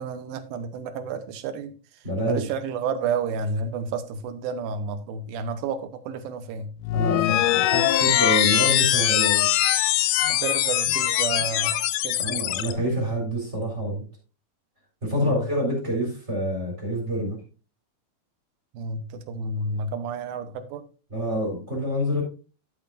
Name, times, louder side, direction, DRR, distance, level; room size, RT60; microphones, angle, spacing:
voice 1, 0.0-6.7 10.3-12.3 15.1-15.5 18.7-20.8, right 4 dB, 80° right, 2.7 m, -31 dB
voice 2, 2.0-2.4 6.9-9.5 12.2-14.0 15.0-17.4 21.1-22.2, equal, 20° right, 3.9 m, -27 dB
sound 1, 6.8-12.7, left 13 dB, 80° left, 2.0 m, -22 dB
12.0 x 8.2 x 2.6 m
omnidirectional pair, 4.2 m